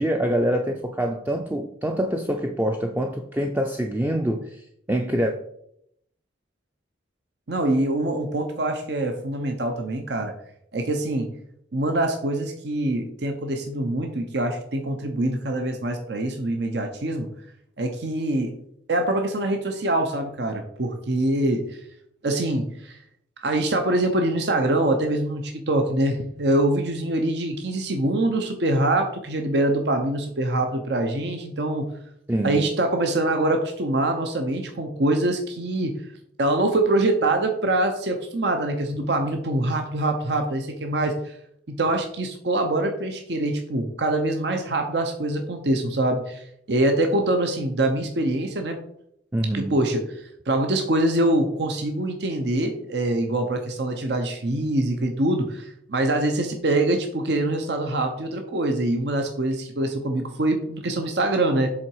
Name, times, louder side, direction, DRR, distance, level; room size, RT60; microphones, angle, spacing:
voice 1, 0.0-5.3 32.3-32.7 49.3-49.7, right 1 dB, 10° right, 3 dB, 0.4 m, -25 dB
voice 2, 7.5-10.3 10.7-11.3 11.7-17.3 17.8-18.5 18.9-21.8 22.2-23.0 23.4-31.9 32.4-36.0 36.4-41.4 41.7-48.8 49.5-61.7, right 1 dB, 70° right, 5 dB, 0.8 m, -24 dB
7.4 x 3.8 x 4.7 m, 0.72 s
head